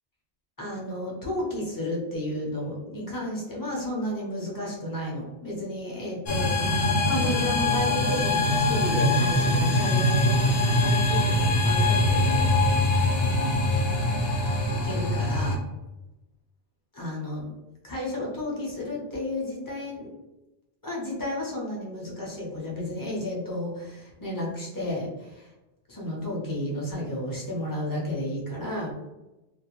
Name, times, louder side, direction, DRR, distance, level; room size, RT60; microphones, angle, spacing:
voice 1, 0.6-12.8 14.7-15.6 16.9-17.5 17.8-20.1 20.8-25.5 25.9-28.9, left 1 dB, 20° left, -4 dB, 0.6 m, -32 dB
sound 1, 6.3-15.6, left 1 dB, 65° left, 0.8 m, -23 dB
2.4 x 2.1 x 3.0 m, 1.0 s
omnidirectional pair, 1.1 m